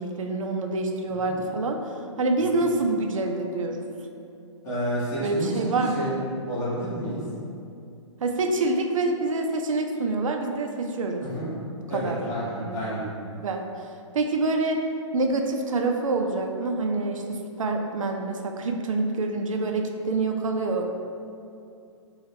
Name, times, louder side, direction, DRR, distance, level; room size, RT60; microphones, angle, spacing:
voice 1, 0.0-1.8 2.2-3.8 5.2-6.1 8.2-11.2 11.9-12.2 12.5-12.8 13.4-13.6 14.1-14.8 15.1-21.0, right 3 dB, 85° right, 3 dB, 0.4 m, -26 dB
voice 2, 4.6-6.1 6.5-7.2 11.2-11.5 11.9-13.0, equal, 20° left, -10 dB, 1.2 m, -30 dB
4.1 x 2.3 x 3.3 m, 2.6 s
hypercardioid pair, 145°, 16 cm